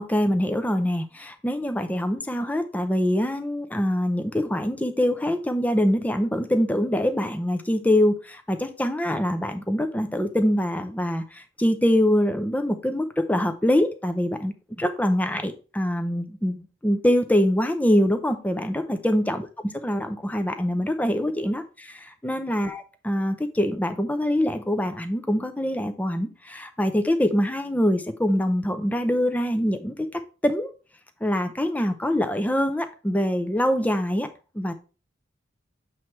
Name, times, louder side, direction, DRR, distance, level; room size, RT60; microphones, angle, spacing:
voice 1, 0.0-19.5 19.8-30.7 31.2-34.3 34.5-34.7, equal, 10° left, 0.5 m, -24 dB
7.5 x 3.2 x 4.4 m
head